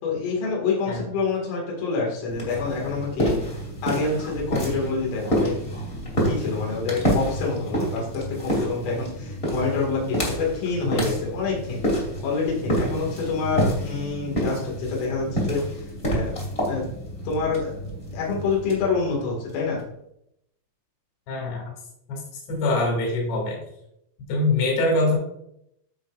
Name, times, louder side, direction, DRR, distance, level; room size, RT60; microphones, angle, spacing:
voice 1, 0.0-3.4 3.8-5.5 6.2-16.3 16.6-16.9 17.3-17.8 18.1-19.8, left 4 dB, 85° left, -3 dB, 4.5 m, -27 dB
sound 1, 2.3-19.8, equal, 30° left, 1.2 m, -28 dB
voice 2, 21.3-21.7 22.1-22.2 22.5-23.6 24.3-25.2, left 2 dB, 65° left, -2 dB, 4.4 m, -23 dB
14.5 x 5.2 x 2.5 m, 0.78 s
omnidirectional pair, 5.6 m